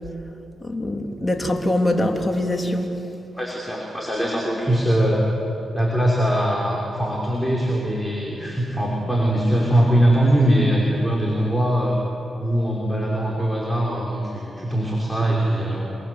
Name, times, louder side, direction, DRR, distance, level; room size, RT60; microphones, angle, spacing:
voice 1, 0.6-2.9, left 1 dB, 25° left, 3 dB, 3.4 m, -23 dB
voice 2, 3.4-5.2 5.7-12.0 12.4-16.0, right 1 dB, ahead, -3 dB, 5.9 m, -21 dB
28.5 x 22.5 x 8.1 m, 2.9 s
supercardioid pair, 50°, 0 cm